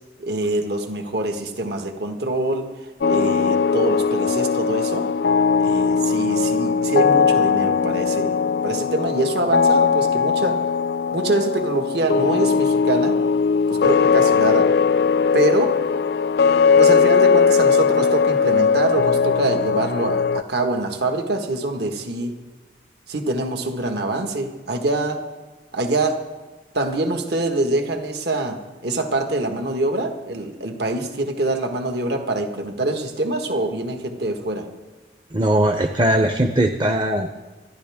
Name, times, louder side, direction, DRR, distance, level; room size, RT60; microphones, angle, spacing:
voice 1, 0.2-5.1 5.6-8.4 8.6-10.6 11.1-13.2 13.7-14.8 15.3-15.7 16.7-22.3 23.1-25.2 25.7-26.2 26.7-34.7, right 2 dB, 60° right, 4 dB, 1.6 m, -24 dB
sound 1, 3.0-20.4, left 5 dB, 60° left, 0.4 m, -19 dB
voice 2, 35.3-37.4, right 1 dB, 25° right, 6 dB, 0.7 m, -20 dB
24.0 x 12.0 x 3.6 m, 1.3 s
head